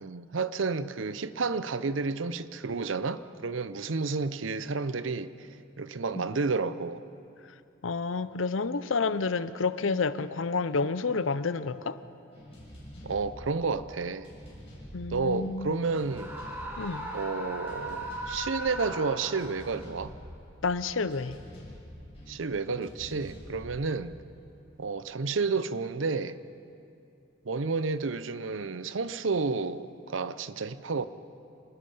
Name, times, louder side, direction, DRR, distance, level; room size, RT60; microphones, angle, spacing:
voice 1, 0.0-5.5 5.8-7.0 13.0-14.3 15.1-16.3 17.1-20.1 22.3-24.2 24.8-26.4 27.4-31.1, right 4 dB, 75° right, 14 dB, 0.7 m, -31 dB
voice 2, 7.8-12.0 14.9-15.7 16.8-17.1 20.6-21.4, left 4 dB, 85° left, 14 dB, 0.7 m, -29 dB
sound 1, 12.3-25.0, equal, 30° left, 7.4 m, -47 dB
Screaming, 16.1-19.7, right 1 dB, 10° right, 2.9 m, -38 dB
27.5 x 19.5 x 5.6 m, 2.6 s
head